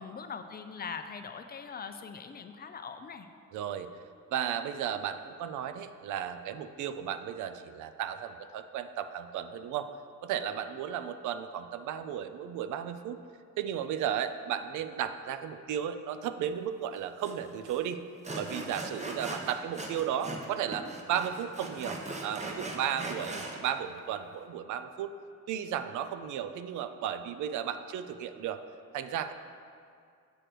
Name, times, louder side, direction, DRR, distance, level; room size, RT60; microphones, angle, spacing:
voice 1, 0.0-3.3, left 6 dB, 30° left, 8 dB, 0.4 m, -42 dB
voice 2, 3.5-3.9 4.3-9.9 10.2-13.2 13.6-18.0 18.4-25.1 25.5-28.6 28.9-29.3, right 9 dB, 80° right, 10 dB, 0.4 m, -34 dB
Sawing, 17.2-17.3 17.6-17.8 18.2-20.5 20.7-23.6, right 2 dB, 25° right, 0.8 m, -39 dB
7.8 x 3.3 x 6.0 m, 2.3 s
cardioid pair, 90°, 30 cm